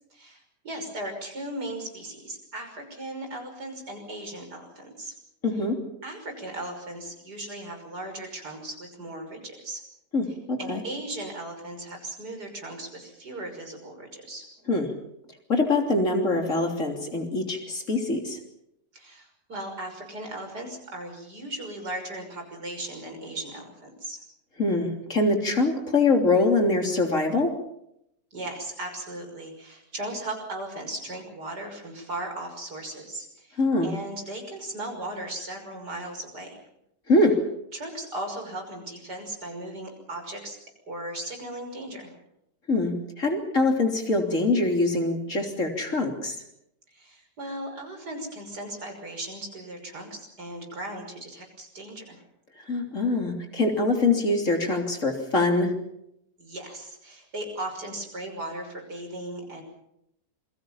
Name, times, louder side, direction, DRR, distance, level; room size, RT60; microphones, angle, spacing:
voice 1, 0.1-5.1 6.0-9.8 10.6-14.4 18.9-24.2 28.3-36.6 37.7-40.6 40.9-42.2 46.9-52.2 56.4-59.6, right 1 dB, 75° right, 4 dB, 6.6 m, -37 dB
voice 2, 5.4-5.8 10.1-10.8 14.7-14.9 15.5-18.4 24.6-27.6 33.6-33.9 37.1-37.5 42.7-46.4 52.7-55.8, left 2 dB, 50° left, 3 dB, 3.6 m, -24 dB
28.0 x 23.0 x 5.7 m, 0.78 s
omnidirectional pair, 1.8 m